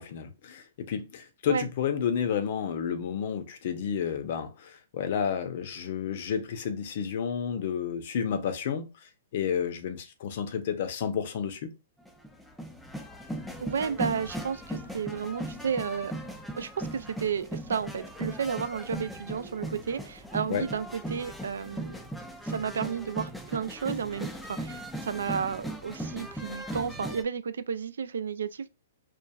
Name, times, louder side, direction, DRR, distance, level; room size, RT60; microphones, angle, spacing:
voice 1, 0.0-8.9 9.3-11.7 20.5-20.7, left 7 dB, 55° left, 0.6 m, -31 dB
sound 1, 12.1-27.2, right 1 dB, ahead, 0.3 m, -38 dB
voice 2, 13.6-16.1 16.6-22.0 22.4-28.7, right 7 dB, 85° right, 0.3 m, -32 dB
2.9 x 2.3 x 2.3 m
hypercardioid pair, 150°, 0 cm